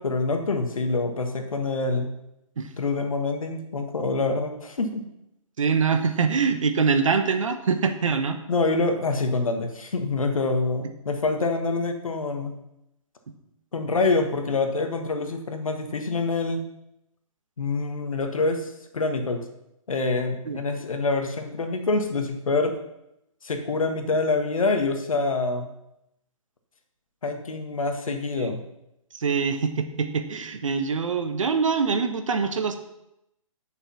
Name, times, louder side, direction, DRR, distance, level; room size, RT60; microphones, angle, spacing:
voice 1, 0.0-2.1 2.8-5.0 8.5-12.5 13.7-16.6 17.6-19.5 19.9-22.7 23.4-25.7 27.2-28.7, left 3 dB, 75° left, 5 dB, 1.6 m, -26 dB
voice 2, 5.6-8.4 20.5-20.6 28.1-28.5 29.1-32.8, right 5 dB, 65° right, 8 dB, 1.3 m, -24 dB
10.0 x 6.7 x 5.8 m, 0.83 s
figure-of-eight pair, 140°, 18 cm